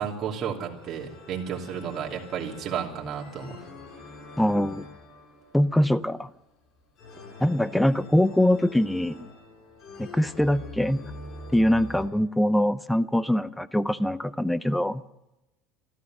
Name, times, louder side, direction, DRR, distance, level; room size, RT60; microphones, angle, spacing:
voice 1, 0.0-3.7, right 7 dB, 40° right, -2 dB, 2.9 m, -32 dB
sound 1, 0.7-12.1, left 2 dB, 50° left, 6.7 m, -45 dB
voice 2, 4.4-4.9 5.5-6.3 7.4-9.3 10.0-11.0 11.5-15.0, left 1 dB, 5° left, 16 dB, 0.6 m, -23 dB
13.5 x 13.0 x 7.8 m, 0.94 s
supercardioid pair, 120°, 0 cm